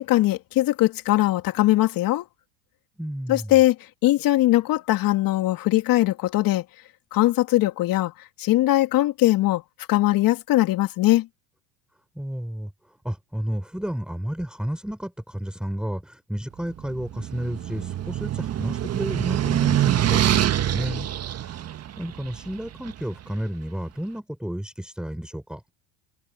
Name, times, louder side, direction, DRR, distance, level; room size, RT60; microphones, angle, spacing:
voice 1, 0.0-2.2 3.3-3.8 4.0-6.6 7.1-8.1 8.4-9.6 9.9-11.3, left 16 dB, 55° left, 3.0 m, -20 dB
voice 2, 3.0-3.5 12.2-12.7 13.0-21.6 22.0-25.6, equal, ahead, 5.5 m, -32 dB
sound 1, 16.8-23.0, right 12 dB, 35° right, 1.7 m, -25 dB
supercardioid pair, 100°, 41 cm